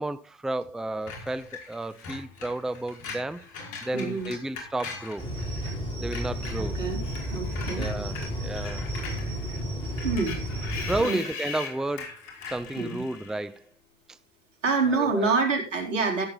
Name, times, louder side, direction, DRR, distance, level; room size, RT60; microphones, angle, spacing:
voice 1, 0.0-3.4 3.8-5.3 6.0-6.8 7.7-8.9 10.9-12.1 12.5-13.6 14.1-14.2 14.9-15.3, right 2 dB, ahead, 0.6 m, -32 dB
Screech, 1.1-5.7 6.0-13.5, left 5 dB, 50° left, 5.4 m, -40 dB
voice 2, 3.9-4.3 6.6-7.0 7.3-7.9 10.0-10.5 11.0-11.2 12.8-13.0 14.6-16.2, right 4 dB, 85° right, 3.7 m, -27 dB
sound 1, 5.2-11.0, equal, 15° left, 8.0 m, -32 dB
15.5 x 8.7 x 3.9 m
hypercardioid pair, 80°, 36 cm